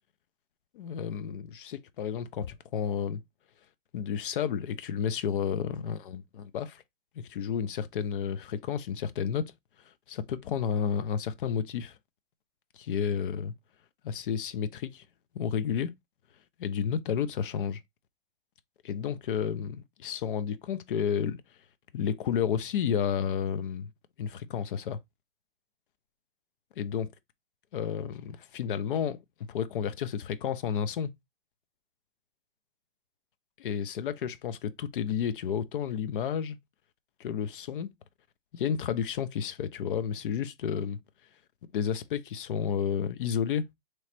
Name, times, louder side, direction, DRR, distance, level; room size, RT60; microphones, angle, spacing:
voice 1, 0.7-3.2 3.9-6.8 7.2-9.4 10.1-11.9 12.7-13.5 14.0-15.0 15.3-15.9 16.6-17.8 18.8-21.4 21.9-23.9 24.2-25.0 26.8-27.1 27.7-29.2 29.5-31.1 33.6-36.6 37.2-37.9 38.5-41.0 41.7-43.6, left 8 dB, 60° left, 0.7 m, -31 dB
3.1 x 3.1 x 4.3 m
hypercardioid pair, 155°, 29 cm